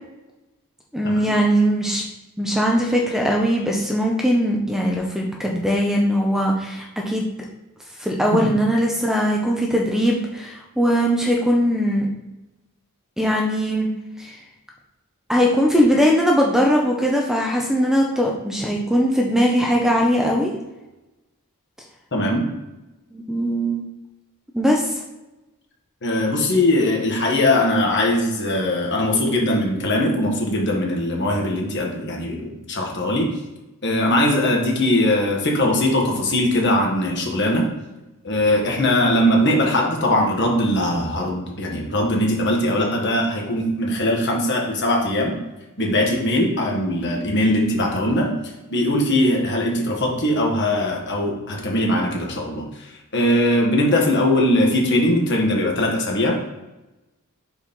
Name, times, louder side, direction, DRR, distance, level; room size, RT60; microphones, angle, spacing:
voice 1, 0.9-2.0 2.4-7.3 8.0-12.1 13.2-13.9 14.2-14.4 15.3-20.5 23.1-23.8 24.5-25.0, equal, ahead, -1 dB, 0.6 m, -20 dB
voice 2, 22.1-22.5 26.0-33.3 33.8-37.7 38.2-45.4 45.8-48.3 48.7-56.5, left 1 dB, 50° left, 0 dB, 1.4 m, -20 dB
4.7 x 4.1 x 5.3 m, 1.0 s
head